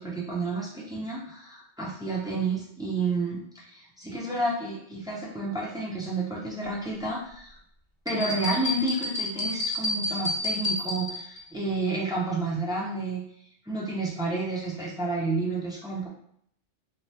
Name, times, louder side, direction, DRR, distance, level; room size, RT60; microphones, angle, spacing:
voice 1, 0.0-7.6 8.0-13.2 13.6-16.1, right 2 dB, 5° right, -5 dB, 0.3 m, -30 dB
sound 1, 8.1-11.4, left 2 dB, 50° left, 0.8 m, -30 dB
3.2 x 2.1 x 2.7 m, 0.67 s
omnidirectional pair, 1.2 m